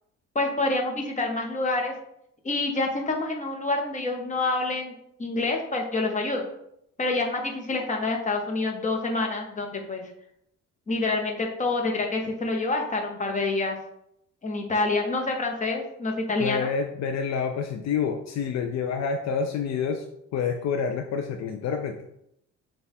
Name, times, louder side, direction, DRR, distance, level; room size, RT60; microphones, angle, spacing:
voice 1, 0.3-1.9 2.4-6.4 7.0-10.1 10.9-13.8 14.4-16.7, left 2 dB, 25° left, 1 dB, 1.0 m, -27 dB
voice 2, 16.4-20.1 20.3-22.0, left 6 dB, 60° left, 5 dB, 0.5 m, -28 dB
6.1 x 2.4 x 3.6 m, 0.77 s
cardioid pair, 90°, 30 cm